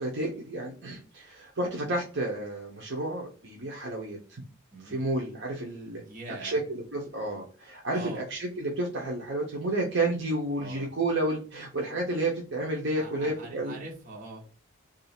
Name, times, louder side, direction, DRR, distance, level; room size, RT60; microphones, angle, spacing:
voice 1, 0.0-4.4 4.8-6.0 6.4-13.7, right 2 dB, 60° right, -2 dB, 0.8 m, -31 dB
voice 2, 4.7-5.1 6.0-6.6 7.9-8.2 10.6-10.9 12.9-14.6, right 2 dB, 40° right, -2 dB, 1.2 m, -43 dB
3.1 x 2.7 x 4.3 m, 0.36 s
head